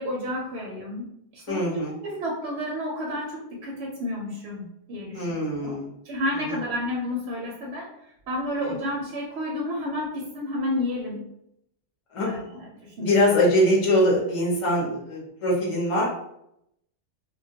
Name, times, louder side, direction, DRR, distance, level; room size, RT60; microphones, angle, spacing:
voice 1, 0.0-1.7 2.0-5.3 5.6-5.8 6.0-7.9 8.3-11.2 12.2-13.3, left 1 dB, 70° right, -2 dB, 0.8 m, -31 dB
voice 2, 1.5-1.9 5.1-5.9 6.3-6.6 8.6-8.8 12.1-12.4 13.0-16.0, left 1 dB, 30° left, -4 dB, 0.6 m, -23 dB
2.2 x 2.1 x 2.7 m, 0.77 s
omnidirectional pair, 1.3 m